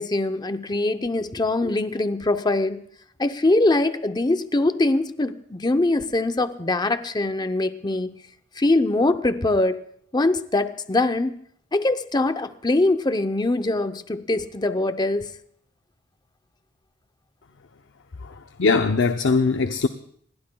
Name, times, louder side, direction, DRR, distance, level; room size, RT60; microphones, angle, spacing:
voice 1, 0.0-2.8 3.2-8.1 8.6-9.8 10.1-11.3 11.7-15.3, left 2 dB, 20° left, 0.7 m, -23 dB
voice 2, 18.2-19.9, left 4 dB, 65° left, 0.6 m, -21 dB
26.5 x 20.5 x 2.3 m
head